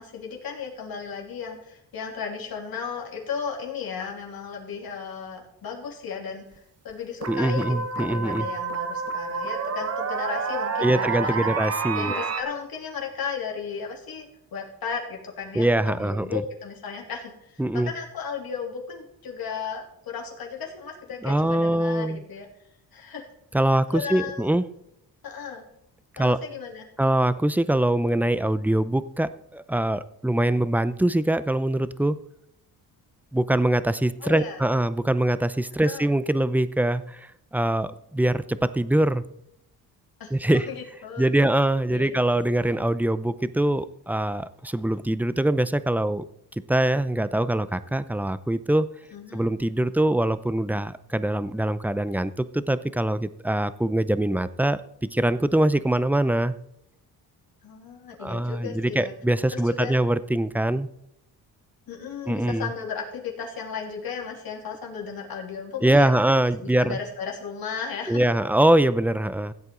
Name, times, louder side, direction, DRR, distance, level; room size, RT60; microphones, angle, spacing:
voice 1, 0.0-11.5 11.9-22.5 22.9-23.3 23.9-24.5 25.2-25.7 26.2-26.9 34.2-34.6 35.8-36.1 40.2-41.3 41.9-42.5 49.1-49.5 57.6-59.1 59.5-59.9 61.9-66.1 66.6-68.2, left 6 dB, 65° left, 0 dB, 3.1 m, -35 dB
sound 1, 6.6-6.7 7.2-12.4, right 5 dB, 40° right, 1.1 m, -29 dB
voice 2, 7.3-8.5 10.8-12.3 15.6-16.4 17.6-17.9 21.2-22.2 23.5-24.7 26.2-26.4 27.0-32.2 33.3-39.2 40.3-40.7 41.2-46.2 46.7-48.9 49.3-54.8 55.1-56.5 58.2-60.9 62.3-62.7 65.8-67.0 68.1-69.5, right 1 dB, 5° right, 14 dB, 0.5 m, -23 dB
15.5 x 8.2 x 3.8 m, 0.78 s
cardioid pair, 85°, 39 cm